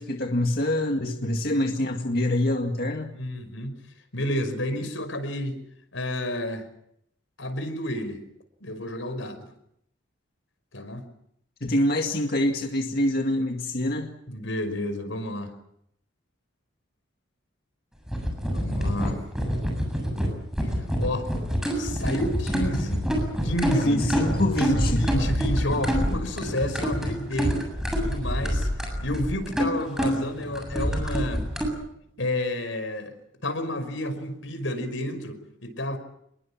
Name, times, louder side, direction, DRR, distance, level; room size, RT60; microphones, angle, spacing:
voice 1, 0.0-3.1 11.6-14.1 23.8-25.0, left 1 dB, 50° left, 3 dB, 2.1 m, -25 dB
voice 2, 3.1-3.8 4.1-5.6 5.9-6.7 7.4-8.2 8.6-9.5 10.7-11.1 14.3-15.5 18.5-19.2 20.6-23.1 23.4-27.7 28.0-28.7 29.0-31.5 32.2-33.1 33.4-36.0, left 1 dB, 85° left, 9 dB, 5.4 m, -31 dB
sound 1, 18.1-31.7, equal, 5° right, 7.4 m, -26 dB
27.5 x 22.5 x 7.4 m, 0.74 s
head